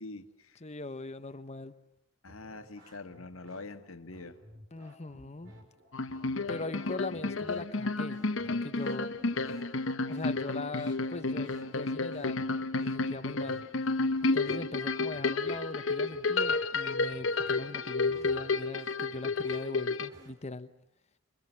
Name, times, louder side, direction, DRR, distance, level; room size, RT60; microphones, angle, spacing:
voice 1, 0.0-0.6 2.2-4.4, left 3 dB, 85° left, 1.7 m, -44 dB
voice 2, 0.6-1.8 4.7-5.5 6.5-9.1 10.1-12.4 12.8-13.7 14.2-20.7, left 2 dB, 35° left, 1.1 m, -40 dB
sound 1, 2.3-20.3, right 1 dB, 60° right, 5.1 m, -55 dB
sound 2, 5.9-20.1, left 3 dB, 65° left, 1.1 m, -31 dB
27.5 x 23.5 x 7.6 m
head